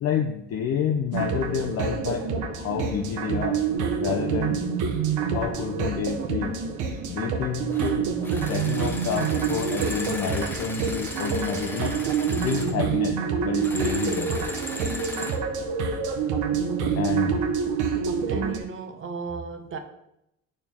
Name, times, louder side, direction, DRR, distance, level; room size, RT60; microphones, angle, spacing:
voice 1, 0.0-3.6 4.0-4.6 5.2-6.6 7.1-8.1 8.5-12.0 12.4-14.3 17.0-17.4, left 7 dB, 50° left, 0.6 m, -29 dB
sound 1, 1.1-18.6, right 6 dB, 70° right, 1.0 m, -27 dB
sound 2, 7.7-7.9 8.2-12.7 13.6-15.4, left 1 dB, 5° left, 0.8 m, -37 dB
voice 2, 18.3-19.8, right 6 dB, 40° right, 0.7 m, -34 dB
7.6 x 4.5 x 3.5 m
cardioid pair, 110°, 31 cm